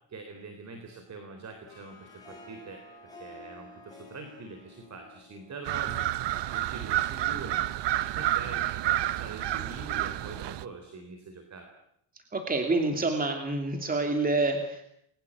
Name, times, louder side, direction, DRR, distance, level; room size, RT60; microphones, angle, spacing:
voice 1, 0.1-2.8 3.2-6.0 6.5-7.6 7.9-11.7, right 3 dB, 40° right, 6 dB, 3.9 m, -44 dB
Harp, 1.5-6.7, left 2 dB, 10° left, 7.7 m, -51 dB
sound 1, 5.7-10.6, right 13 dB, 75° right, 1.1 m, -29 dB
voice 2, 12.3-14.8, right 2 dB, 20° right, 5 dB, 2.8 m, -27 dB
29.0 x 22.0 x 8.4 m, 0.76 s
cardioid pair, 160°, 43 cm